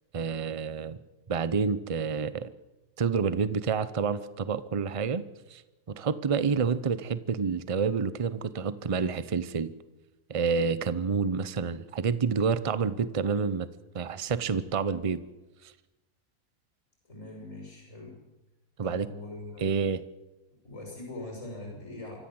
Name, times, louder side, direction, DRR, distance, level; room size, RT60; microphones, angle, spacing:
voice 1, 0.1-1.0 1.3-2.5 3.0-5.2 5.5-5.6 6.0-9.7 10.3-13.7 13.9-15.2 18.8-19.1 19.6-20.0, right 5 dB, 30° right, 15 dB, 0.6 m, -28 dB
voice 2, 17.0-18.2 18.8-19.7 20.6-22.2, left 2 dB, 50° left, 0 dB, 6.9 m, -42 dB
25.0 x 14.0 x 7.8 m, 1.1 s
omnidirectional pair, 1.7 m